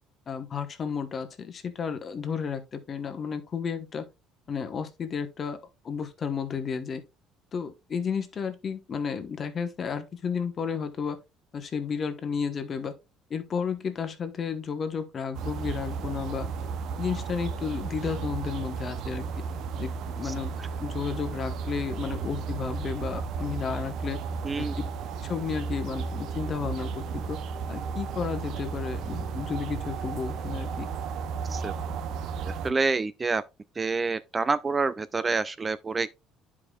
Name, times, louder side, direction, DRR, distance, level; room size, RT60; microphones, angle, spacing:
voice 1, 0.3-4.0 4.5-5.6 5.8-7.0 7.5-11.2 11.5-12.9 13.3-16.5 17.0-19.2 19.8-20.5 20.8-24.2 24.6-24.7 25.2-27.4 27.7-30.9, left 6 dB, 35° left, 1.0 m, -32 dB
sound 1, 15.3-32.7, right 5 dB, 60° right, 0.6 m, -34 dB
voice 2, 20.2-20.7 24.4-24.7 31.4-31.7 32.6-33.4 33.8-36.1, right 4 dB, 20° right, 0.3 m, -28 dB
10.5 x 4.8 x 2.3 m
cardioid pair, 120°, 0 cm